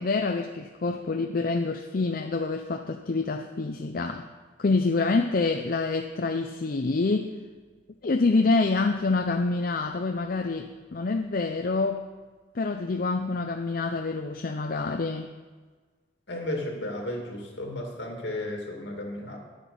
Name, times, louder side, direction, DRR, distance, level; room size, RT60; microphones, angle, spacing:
voice 1, 0.0-4.2 4.6-7.3 8.0-12.1 12.5-15.3, left 3 dB, 50° left, 4 dB, 0.5 m, -26 dB
voice 2, 16.3-19.4, left 1 dB, 70° left, 1 dB, 2.4 m, -34 dB
10.0 x 9.0 x 5.4 m, 1.4 s
head